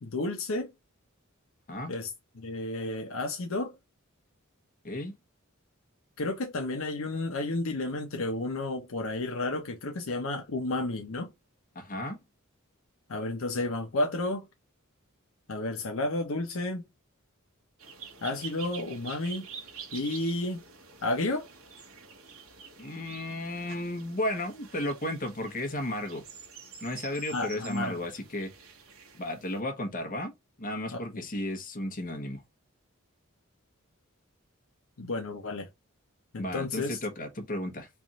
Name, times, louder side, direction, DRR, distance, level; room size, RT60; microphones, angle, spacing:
voice 1, 0.0-0.7 1.9-2.1 2.4-3.8 6.2-11.3 13.1-14.5 15.5-16.9 18.2-19.5 19.9-20.6 21.0-21.5 27.3-28.0 30.9-31.2 35.0-35.7 36.3-37.0, left 2 dB, 70° left, 0.7 m, -32 dB
voice 2, 4.8-5.2 11.7-12.2 22.8-26.2 26.8-28.5 29.1-32.4 36.4-37.9, left 1 dB, 40° left, 1.1 m, -34 dB
sound 1, 17.8-29.6, right 6 dB, 75° right, 1.3 m, -47 dB
3.5 x 2.5 x 4.1 m
head